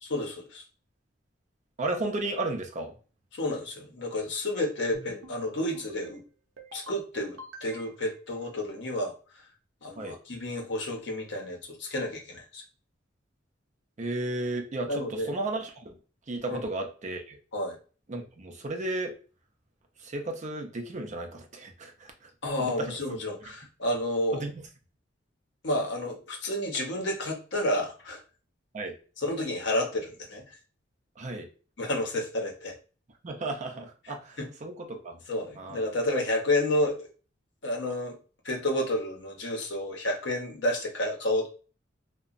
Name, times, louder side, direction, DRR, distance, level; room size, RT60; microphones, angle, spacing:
voice 1, 0.0-0.6 3.3-6.2 6.7-9.1 9.8-12.6 14.9-15.3 16.5-16.6 17.5-17.8 22.4-24.4 25.6-28.2 29.2-30.5 31.8-32.7 34.4-34.5 35.3-37.1 37.6-38.2 38.4-41.5, left 1 dB, 65° left, 1 dB, 0.8 m, -30 dB
voice 2, 1.8-3.0 10.0-10.2 14.0-15.9 16.3-17.4 18.1-19.1 20.0-22.3 22.6-23.0 24.3-24.5 28.7-29.0 31.2-31.5 33.2-35.2 35.6-35.9, right 2 dB, 40° right, 3 dB, 0.5 m, -34 dB
sound 1, 4.9-5.4 5.7-6.2 6.6-7.0 7.4-8.2, right 1 dB, 85° right, 0.6 m, -46 dB
2.8 x 2.1 x 2.5 m, 0.37 s
head